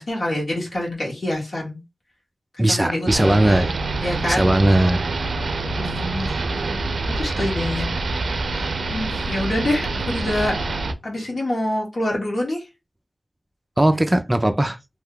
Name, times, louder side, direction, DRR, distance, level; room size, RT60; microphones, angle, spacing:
voice 1, 0.0-1.8 2.5-3.7 4.0-4.5 5.8-7.9 8.5-10.6 11.0-12.6, left 1 dB, 65° left, 1.4 m, -26 dB
voice 2, 2.6-3.7 4.3-5.0 13.8-14.8, right 1 dB, 15° right, 0.3 m, -18 dB
sound 1, 3.1-10.9, right 3 dB, 90° right, 0.4 m, -26 dB
2.7 x 2.2 x 3.6 m
wide cardioid pair, 100°, 0 cm